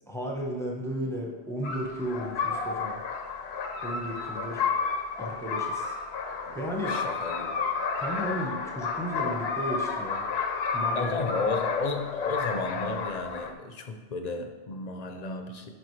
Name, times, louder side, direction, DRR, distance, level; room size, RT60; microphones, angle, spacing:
voice 1, 0.1-3.0 3.8-4.7 5.2-5.9 6.5-7.0 8.0-10.3 10.7-11.4, equal, 5° left, -1 dB, 0.9 m, -34 dB
sound 1, 1.6-13.5, left 5 dB, 75° left, 0.9 m, -31 dB
voice 2, 6.9-7.6 10.9-15.7, left 4 dB, 45° left, 5 dB, 0.7 m, -33 dB
10.5 x 5.0 x 3.2 m, 1.3 s
omnidirectional pair, 1.1 m